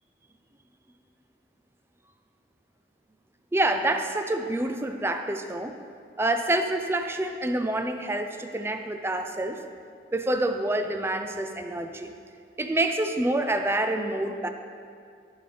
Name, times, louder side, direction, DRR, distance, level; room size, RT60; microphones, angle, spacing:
voice 1, 3.5-5.8 6.2-9.6 10.1-12.1 12.6-14.5, right 1 dB, 15° right, 6 dB, 0.4 m, -27 dB
15.0 x 5.5 x 3.3 m, 2.2 s
head